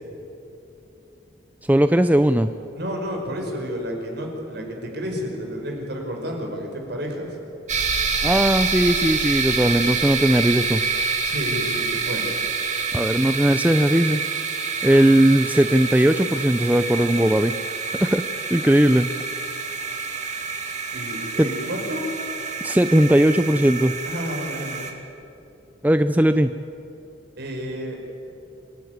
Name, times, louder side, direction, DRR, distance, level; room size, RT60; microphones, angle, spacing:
voice 1, 1.7-2.5 8.2-10.8 12.9-14.2 14.8-17.5 18.0-18.2 18.5-19.1 21.4-21.5 22.6-23.9 25.8-26.5, right 1 dB, 10° right, 9 dB, 0.5 m, -18 dB
voice 2, 2.7-7.4 11.2-12.3 20.9-22.1 24.0-24.9 27.4-28.0, equal, 60° right, 1 dB, 5.5 m, -31 dB
sound 1, 7.7-24.9, right 4 dB, 40° right, 2.4 m, -27 dB
27.0 x 18.0 x 9.5 m, 2.8 s
head